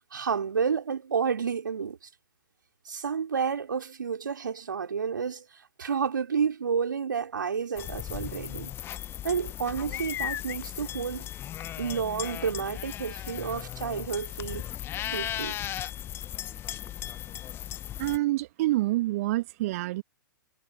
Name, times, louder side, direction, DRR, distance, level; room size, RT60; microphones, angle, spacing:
voice 1, 0.1-2.0 2.9-5.5 5.8-8.7 9.2-11.3 11.8-14.6 15.1-15.6, right 6 dB, 65° right, 3.5 m, -30 dB
sound 1, 7.8-18.2, left 12 dB, 20° left, 1.0 m, -36 dB
voice 2, 18.0-20.0, right 17 dB, 45° right, 1.7 m, -27 dB
figure-of-eight pair, 110°, 11 cm